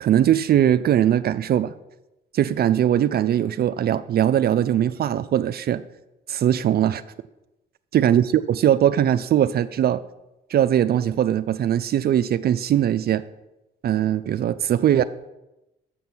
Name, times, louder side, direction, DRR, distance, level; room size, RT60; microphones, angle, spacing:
voice 1, 0.0-1.7 2.3-5.8 6.3-7.0 7.9-10.0 10.5-13.2 13.8-15.0, right 10 dB, 55° right, 13 dB, 0.4 m, -20 dB
7.5 x 5.5 x 6.1 m, 0.94 s
cardioid pair, 90°, 20 cm